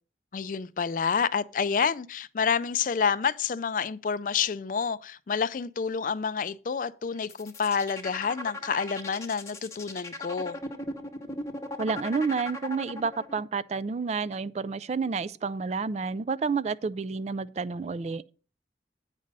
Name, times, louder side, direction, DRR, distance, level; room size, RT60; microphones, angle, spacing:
voice 1, 0.3-10.6, left 6 dB, 50° left, 0.4 m, -28 dB
sound 1, 7.2-13.4, left 1 dB, 15° left, 0.9 m, -37 dB
voice 2, 11.8-18.2, right 4 dB, 40° right, 0.3 m, -30 dB
9.1 x 5.3 x 5.3 m
head